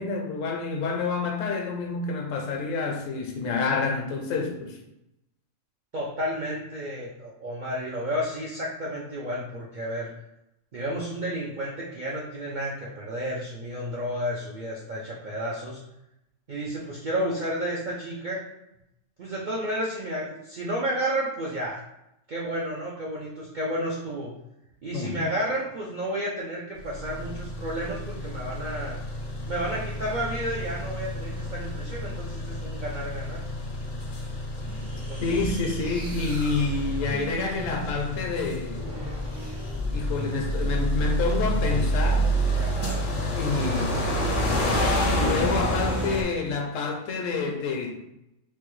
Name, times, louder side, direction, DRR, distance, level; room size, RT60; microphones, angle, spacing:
voice 1, 0.0-4.8 24.9-25.3 35.2-38.9 39.9-42.3 43.3-44.0 45.1-48.0, left 4 dB, 75° left, 0.9 m, -28 dB
voice 2, 5.9-10.1 10.7-15.8 16.5-18.4 19.2-21.8 22.3-24.3 24.8-29.0 29.5-33.4 34.9-35.4 42.6-43.1, equal, 65° right, 0.4 m, -31 dB
sound 1, 26.8-46.2, equal, 55° left, 0.6 m, -29 dB
sound 2, 34.6-40.6 41.5-42.1, left 2 dB, 80° right, 1.5 m, -37 dB
3.2 x 2.2 x 3.1 m
omnidirectional pair, 1.4 m